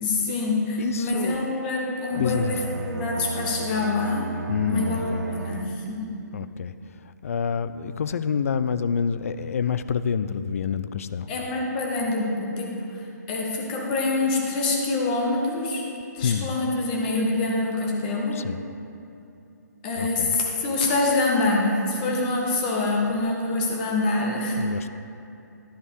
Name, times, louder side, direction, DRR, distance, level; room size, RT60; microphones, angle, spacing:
voice 1, 0.0-2.6 2.8-4.3 4.7-6.1 11.3-15.9 16.1-18.4 19.8-24.6, left 2 dB, 30° left, -1 dB, 1.4 m, -25 dB
voice 2, 0.8-1.5 2.2-2.6 4.5-5.3 6.3-11.3 16.2-16.5 18.3-18.6 19.9-20.4 24.6-24.9, left 6 dB, 50° left, 13 dB, 0.4 m, -28 dB
Bowed string instrument, 2.0-6.1, right 4 dB, 65° right, 0.4 m, -35 dB
11.5 x 5.1 x 4.9 m, 2.7 s
figure-of-eight pair, 140°, 10 cm